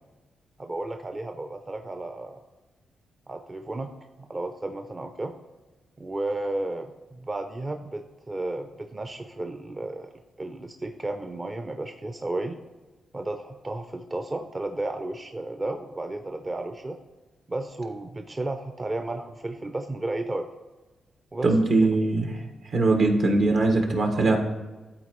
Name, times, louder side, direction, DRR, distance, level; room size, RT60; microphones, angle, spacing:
voice 1, 0.6-2.4 3.3-3.9 4.2-5.3 6.0-10.1 10.4-12.6 13.1-17.0 17.5-20.5 21.3-21.5 21.8-21.9, right 2 dB, 30° right, 6 dB, 0.6 m, -33 dB
voice 2, 21.4-22.4 22.7-24.4, right 2 dB, 70° right, 3 dB, 1.5 m, -21 dB
12.5 x 4.3 x 3.1 m, 1.2 s
cardioid pair, 70°, 0 cm